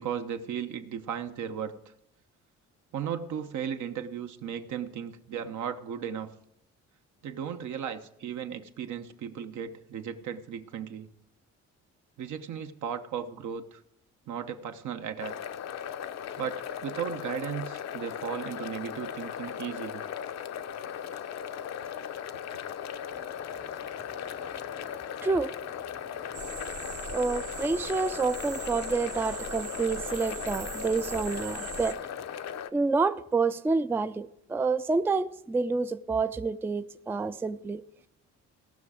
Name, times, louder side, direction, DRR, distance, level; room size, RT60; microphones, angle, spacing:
voice 1, 0.0-1.7 2.9-6.3 7.2-11.1 12.2-13.8 14.3-15.3 16.4-20.0, right 8 dB, 75° right, 1.0 m, -36 dB
sound 1, 15.2-32.7, left 8 dB, 60° left, 0.6 m, -37 dB
sound 2, 26.3-31.9, right 6 dB, 50° right, 0.9 m, -40 dB
voice 2, 27.1-32.0 32.7-37.8, right 4 dB, 10° right, 0.3 m, -28 dB
17.0 x 6.0 x 4.9 m
cardioid pair, 90°, 30 cm